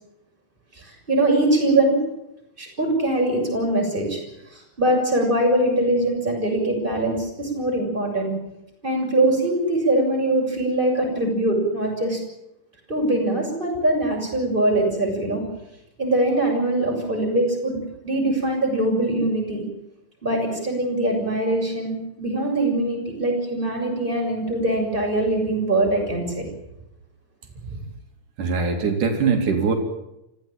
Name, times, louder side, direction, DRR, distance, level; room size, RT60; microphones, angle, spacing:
voice 1, 0.8-2.0 2.6-4.2 4.5-8.3 8.8-12.2 12.9-15.4 16.0-17.8 18.0-19.6 20.2-26.5, right 1 dB, 15° right, 0 dB, 6.9 m, -22 dB
voice 2, 28.4-29.7, right 5 dB, 85° right, 4 dB, 4.3 m, -21 dB
26.5 x 16.0 x 9.0 m, 0.87 s
omnidirectional pair, 3.5 m